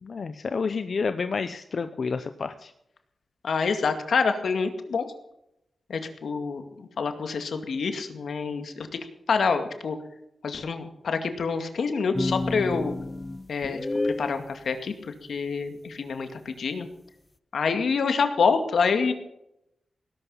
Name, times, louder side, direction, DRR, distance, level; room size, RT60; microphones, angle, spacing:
voice 1, 0.0-2.7, left 5 dB, 55° left, 10 dB, 0.8 m, -29 dB
voice 2, 3.4-5.0 5.9-8.9 9.3-10.0 10.4-12.9 13.5-13.8 14.0-16.9 17.5-19.1, left 5 dB, 75° left, 7 dB, 2.2 m, -27 dB
sound 1, 12.1-14.4, left 2 dB, 20° left, 0.5 m, -29 dB
18.5 x 12.0 x 5.7 m, 0.80 s
wide cardioid pair, 130°, 0 cm